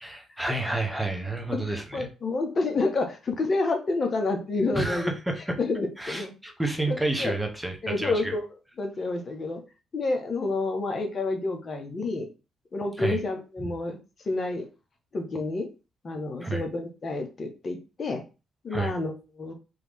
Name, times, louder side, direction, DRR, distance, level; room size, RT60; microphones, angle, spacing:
voice 1, 0.0-2.1 4.7-5.5 6.0-8.3 13.0-13.2 13.6-13.7 16.4-16.6 18.7-18.9, right 2 dB, 5° right, 3 dB, 1.1 m, -30 dB
voice 2, 1.9-5.1 5.6-6.3 6.9-7.3 7.8-8.4 8.8-9.6 9.9-12.3 12.7-14.0 14.2-14.7 15.1-15.7 16.0-18.2 18.6-19.5, left 3 dB, 40° left, 4 dB, 1.3 m, -29 dB
3.7 x 3.1 x 3.6 m, 0.30 s
cardioid pair, 90°, 0 cm